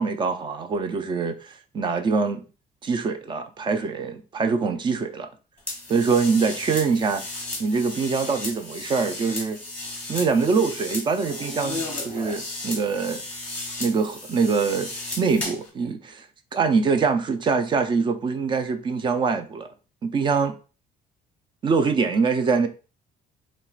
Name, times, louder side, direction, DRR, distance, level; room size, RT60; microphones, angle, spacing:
voice 1, 0.0-2.4 2.8-5.3 5.9-7.2 7.6-9.6 10.1-13.2 13.8-14.9 15.2-16.3 16.5-19.7 20.0-20.6 21.6-22.7, right 5 dB, 30° right, 0.4 m, -24 dB
sound 1, 5.7-15.7, left 2 dB, 10° left, 1.0 m, -34 dB
4.5 x 3.0 x 2.4 m
cardioid pair, 160°, 17 cm